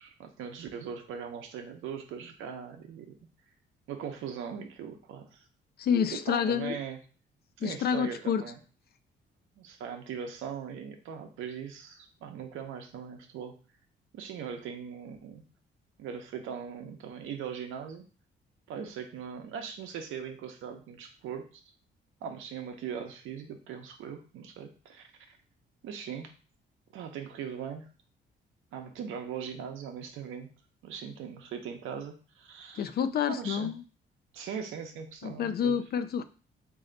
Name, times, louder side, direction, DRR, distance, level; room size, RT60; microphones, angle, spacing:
voice 1, 0.0-3.2 3.9-5.4 6.1-7.0 7.6-8.6 9.6-13.6 14.1-15.4 16.0-18.0 18.7-21.6 22.2-25.1 25.8-26.3 26.9-27.9 28.7-30.5 30.8-32.9 33.3-33.8 34.3-35.8, right 7 dB, 85° right, 5 dB, 0.7 m, -40 dB
voice 2, 5.8-6.8 7.6-8.4 32.8-33.8 35.2-36.2, left 7 dB, 55° left, 12 dB, 0.4 m, -28 dB
3.2 x 2.7 x 3.8 m, 0.37 s
cardioid pair, 90°, 20 cm